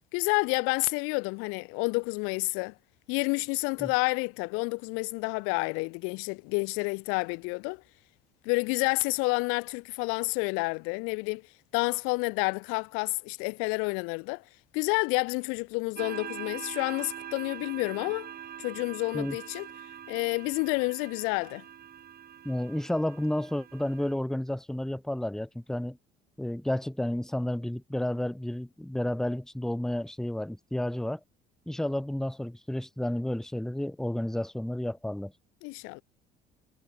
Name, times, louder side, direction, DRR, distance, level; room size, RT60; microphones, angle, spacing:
voice 1, 0.1-2.7 3.1-7.8 8.4-11.4 11.7-14.4 14.7-18.3 18.6-19.7 20.1-21.6 35.6-36.0, left 32 dB, 80° left, 0.7 m, -29 dB
sound 1, 16.0-24.1, right 9 dB, 45° right, 1.5 m, -43 dB
voice 2, 22.4-26.0 26.4-31.2 31.7-35.3, left 1 dB, ahead, 0.8 m, -31 dB
supercardioid pair, 75°, 21 cm